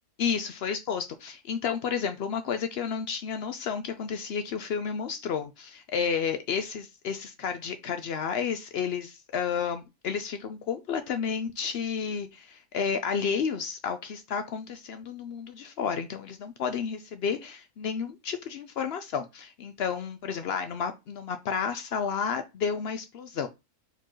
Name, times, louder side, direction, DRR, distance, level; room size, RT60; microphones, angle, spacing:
voice 1, 0.2-23.5, left 6 dB, 80° left, 0.5 m, -31 dB
4.4 x 4.0 x 3.0 m
omnidirectional pair, 1.6 m